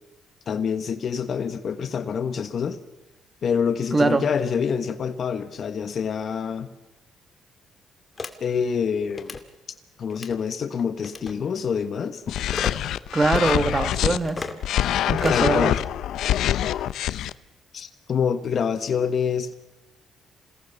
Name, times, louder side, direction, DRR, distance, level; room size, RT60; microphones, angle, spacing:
voice 1, 0.5-2.8 3.4-6.7 8.4-9.4 10.0-12.4 15.3-15.8 17.7-19.5, left 7 dB, 55° left, 11 dB, 1.3 m, -26 dB
voice 2, 3.9-4.2 13.1-14.5 15.1-15.7, right 3 dB, 25° right, 10 dB, 2.0 m, -22 dB
sound 1, 8.2-8.3 9.1-9.4 10.1-10.4 11.0-11.3 12.5-12.7 13.3-13.6 14.2-14.6 15.2-15.5, left 4 dB, 30° left, 2.2 m, -32 dB
sound 2, 12.3-14.2 14.6-17.3, left 12 dB, 80° left, 0.7 m, -24 dB
27.5 x 18.0 x 6.8 m, 1.0 s
cardioid pair, 90°, 0 cm